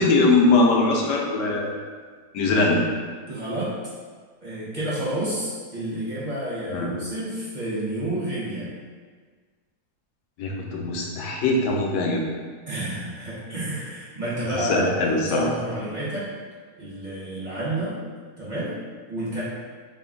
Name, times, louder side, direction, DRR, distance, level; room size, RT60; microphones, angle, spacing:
voice 1, 0.0-1.7 2.3-2.8 6.7-6.9 10.4-12.2 14.5-15.5, left 3 dB, 90° left, -1 dB, 1.2 m, -21 dB
voice 2, 3.3-3.7 4.4-8.7 12.7-16.3 16.8-18.0 18.4-18.7 19.1-19.4, right 1 dB, 45° right, -9 dB, 0.6 m, -30 dB
3.6 x 2.3 x 3.6 m, 1.5 s
omnidirectional pair, 1.8 m